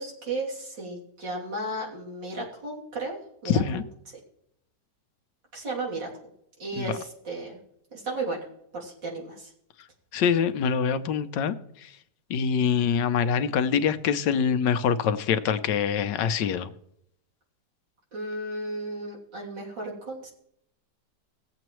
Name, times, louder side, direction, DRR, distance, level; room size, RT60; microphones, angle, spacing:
voice 1, 0.0-3.2 3.4-3.6 5.5-6.1 6.6-7.6 7.9-8.5 8.7-9.5 18.1-20.3, right 2 dB, 90° right, 3.6 m, -34 dB
voice 2, 3.5-3.8 6.8-6.9 10.1-11.9 12.3-16.7, left 7 dB, 80° left, 1.3 m, -25 dB
18.0 x 7.8 x 3.1 m
omnidirectional pair, 1.9 m